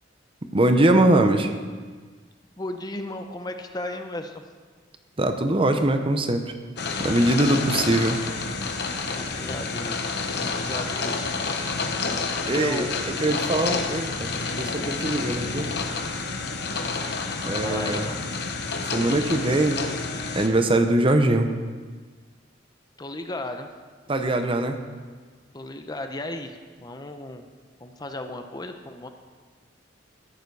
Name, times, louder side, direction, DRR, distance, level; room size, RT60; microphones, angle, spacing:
voice 1, 0.5-1.5 5.2-6.5 7.0-8.2 12.5-15.8 17.4-18.1 18.9-19.9 20.3-21.5 24.1-24.8, right 1 dB, 30° right, 7 dB, 0.8 m, -22 dB
voice 2, 2.6-4.4 7.7-7.8 9.2-10.1 10.4-11.6 12.6-12.9 17.5-18.2 23.0-23.7 25.5-27.5 27.8-29.1, left 1 dB, 20° left, 6 dB, 0.7 m, -35 dB
sound 1, 6.8-20.5, left 4 dB, 60° left, 1.1 m, -29 dB
13.5 x 9.5 x 4.7 m, 1.5 s
head